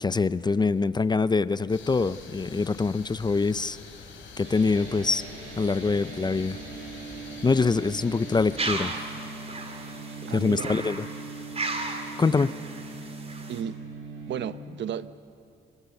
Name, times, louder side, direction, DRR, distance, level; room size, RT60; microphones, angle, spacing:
voice 1, 0.0-3.8 4.4-5.2 5.6-6.6 7.4-8.9 10.3-11.1 12.2-12.6, left 4 dB, 20° left, 16 dB, 0.5 m, -24 dB
sound 1, 1.7-8.8, left 5 dB, 75° left, 5.4 m, -45 dB
sound 2, 4.4-14.5, right 3 dB, 90° right, 7.3 m, -41 dB
sound 3, 8.6-13.6, right 3 dB, 30° right, 3.5 m, -35 dB
voice 2, 10.3-10.7 13.5-13.8 14.3-15.1, right 9 dB, 65° right, 13 dB, 0.9 m, -33 dB
26.0 x 24.5 x 7.1 m, 2.7 s
cardioid pair, 90°, 20 cm